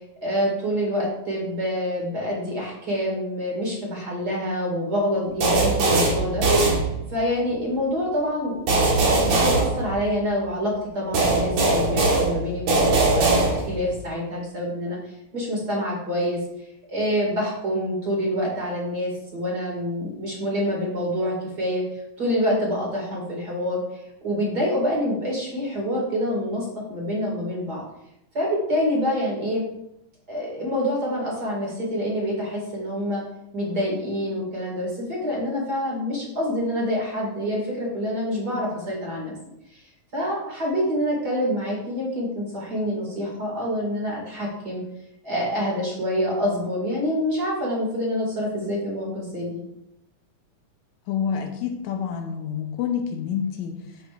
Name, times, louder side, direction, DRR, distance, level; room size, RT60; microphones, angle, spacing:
voice 1, 0.2-6.4 7.1-8.8 9.2-15.0 15.3-16.4 16.9-21.8 22.2-23.8 24.2-27.8 28.3-29.6 30.3-33.2 33.5-39.4 40.1-44.8 45.2-49.6, equal, 35° right, -3 dB, 2.4 m, -26 dB
sound 1, 5.4-7.3 8.7-10.4 11.1-13.9, right 2 dB, 65° right, 2.7 m, -21 dB
voice 2, 51.1-54.0, left 7 dB, 75° left, 4 dB, 2.0 m, -28 dB
8.4 x 7.8 x 2.5 m, 0.81 s
omnidirectional pair, 3.4 m